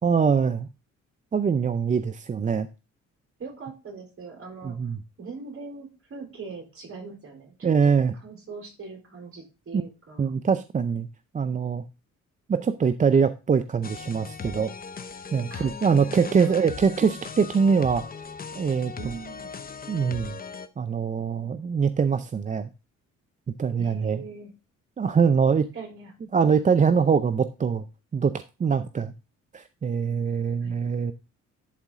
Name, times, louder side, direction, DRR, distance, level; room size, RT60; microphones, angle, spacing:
voice 1, 0.0-0.7 1.3-2.7 4.6-5.0 7.6-8.1 9.7-9.8 10.2-11.1 11.3-11.8 12.5-14.7 15.3-18.0 18.5-19.1 19.9-20.4 20.8-22.7 23.6-24.2 25.0-25.7 26.3-27.8 28.1-29.1 29.5-31.1, right 6 dB, 25° right, 0.4 m, -23 dB
voice 2, 3.4-4.8 5.2-7.9 8.2-10.4 15.5-17.2 19.0-19.5 23.8-24.5 25.7-26.1 30.6-30.8, right 4 dB, 45° right, 4.0 m, -41 dB
sound 1, 13.8-20.7, left 5 dB, 30° left, 0.8 m, -39 dB
11.5 x 4.1 x 3.6 m
cardioid pair, 90°, 30 cm